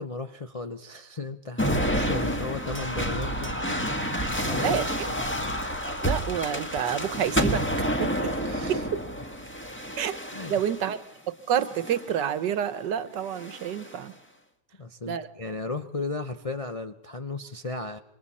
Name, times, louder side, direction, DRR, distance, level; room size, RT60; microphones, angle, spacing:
voice 1, 0.0-3.8 4.2-5.5 8.4-8.9 10.3-10.6 14.8-18.0, left 3 dB, 45° left, 6 dB, 0.4 m, -35 dB
sound 1, 1.6-11.0 11.6-12.2 13.3-14.0, equal, 5° left, 1.5 m, -29 dB
voice 2, 4.6-5.0 5.8-7.6 8.0-8.3 8.7-8.8 10.0-10.1 10.5-11.0 11.5-14.1 15.1-15.3, right 9 dB, 80° right, 13 dB, 1.6 m, -28 dB
27.5 x 24.0 x 4.2 m, 0.83 s
omnidirectional pair, 1.8 m